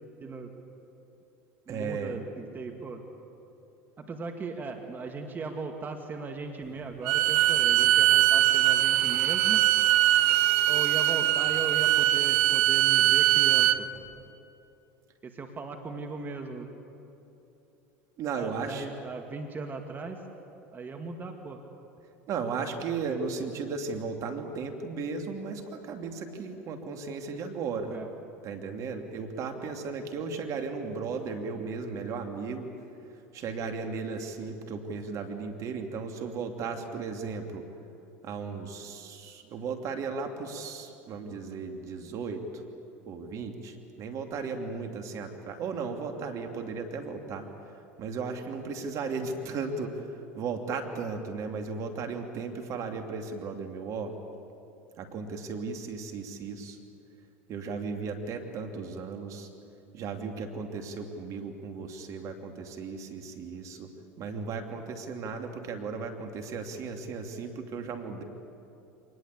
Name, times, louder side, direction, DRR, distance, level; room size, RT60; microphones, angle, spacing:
voice 1, 0.2-0.5 1.7-3.0 4.0-9.6 10.7-13.9 15.2-16.7 18.4-20.2 20.7-21.6 27.9-28.1, right 3 dB, 30° right, 4 dB, 2.4 m, -38 dB
voice 2, 1.7-2.1 18.2-18.8 22.3-28.0 28.4-32.7 33.3-37.6 38.2-42.4 43.0-47.4 48.0-50.0 50.3-54.1 55.0-56.8 57.5-59.5 59.9-63.9 64.2-68.2, right 5 dB, 50° right, 4 dB, 2.7 m, -35 dB
Bowed string instrument, 7.0-13.8, right 14 dB, 70° right, 0.9 m, -22 dB
25.5 x 20.0 x 8.4 m, 2.9 s
hypercardioid pair, 85°, 7 cm